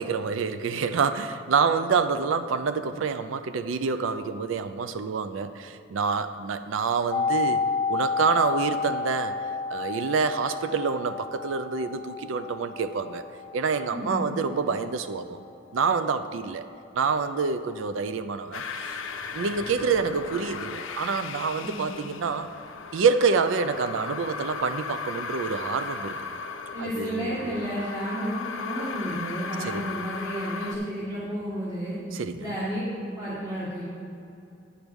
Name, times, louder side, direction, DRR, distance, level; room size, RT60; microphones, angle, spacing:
voice 1, 0.0-7.6 7.9-13.2 13.5-15.4 15.7-16.7 16.9-19.0 19.3-22.5 22.9-26.4 26.8-27.6 29.6-30.0 32.1-32.5, right 5 dB, 75° right, 11 dB, 0.4 m, -27 dB
sound 1, 7.1-16.8 17.1-17.2, left 4 dB, 25° left, 0.3 m, -31 dB
voice 2, 13.9-14.4 21.6-21.9 26.7-32.0 32.4-33.8, equal, 20° right, -11 dB, 1.9 m, -32 dB
sound 2, 18.5-30.8, left 5 dB, 75° left, 0.5 m, -36 dB
10.0 x 5.2 x 6.2 m, 2.7 s
head